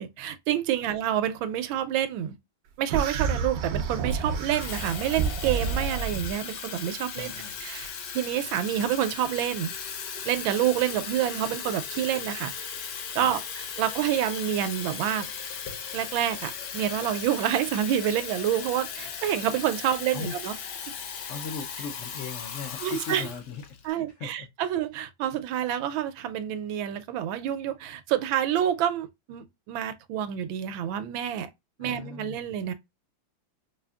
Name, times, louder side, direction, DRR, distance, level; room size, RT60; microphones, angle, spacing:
voice 1, 0.0-2.3 2.8-7.3 7.6-9.7 10.2-12.5 13.1-15.3 15.9-20.5 22.8-23.2 23.8-31.5 31.8-32.7, right 11 dB, 85° right, 1.4 m, -28 dB
sound 1, 2.9-6.3, right 5 dB, 65° right, 1.0 m, -29 dB
Water tap faucet / Fill (with liquid), 4.1-23.8, left 7 dB, 65° left, 1.1 m, -37 dB
voice 2, 7.1-7.6 13.1-13.4 20.1-20.3 21.3-24.5 31.8-32.5, left 5 dB, 85° left, 0.6 m, -38 dB
5.2 x 2.5 x 2.2 m
omnidirectional pair, 2.1 m